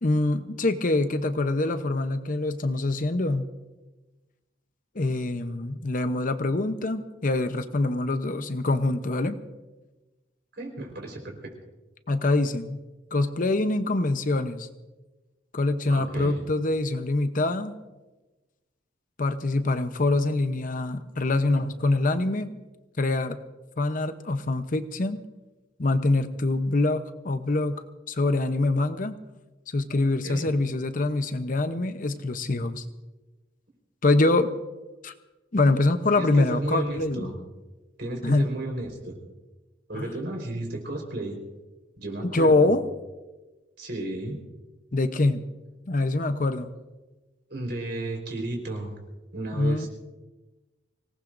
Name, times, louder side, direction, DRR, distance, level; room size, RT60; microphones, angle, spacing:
voice 1, 0.0-3.4 4.9-9.4 12.1-12.8 13.1-14.7 15.5-17.7 19.2-22.5 23.0-23.4 23.8-25.2 25.8-27.8 28.1-29.1 29.7-32.8 34.0-34.5 35.0-35.1 35.5-37.3 38.2-38.6 39.9-40.1 42.2-42.8 44.9-45.5 45.9-46.7 49.6-49.9, left 2 dB, 45° left, 10 dB, 0.8 m, -24 dB
voice 2, 10.5-11.5 15.9-16.5 30.2-30.6 36.1-37.4 38.0-39.2 39.9-41.4 42.0-42.7 43.8-44.4 47.5-48.9 49.3-49.9, right 2 dB, 60° right, 2 dB, 4.3 m, -33 dB
25.0 x 18.0 x 2.6 m, 1.2 s
head